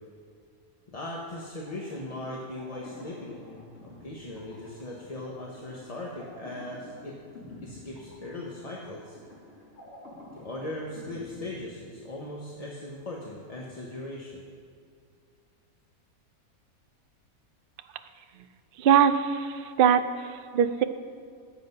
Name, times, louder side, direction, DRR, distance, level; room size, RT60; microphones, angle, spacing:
voice 1, 0.9-7.2 7.6-9.2 10.3-14.4, left 1 dB, 30° left, -3 dB, 0.9 m, -39 dB
sound 1, 1.7-12.3, left 1 dB, 45° left, 2.6 m, -49 dB
voice 2, 18.8-20.8, right 8 dB, 70° right, 9 dB, 0.5 m, -22 dB
11.0 x 7.7 x 5.3 m, 2.3 s
omnidirectional pair, 1.5 m